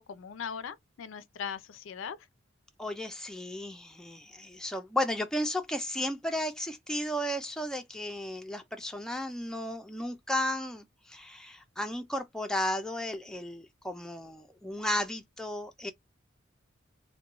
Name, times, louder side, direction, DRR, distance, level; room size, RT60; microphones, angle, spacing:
voice 1, 0.0-2.2, left 7 dB, 70° left, 0.4 m, -39 dB
voice 2, 2.8-15.9, left 1 dB, 5° left, 0.4 m, -34 dB
2.3 x 2.1 x 2.9 m
head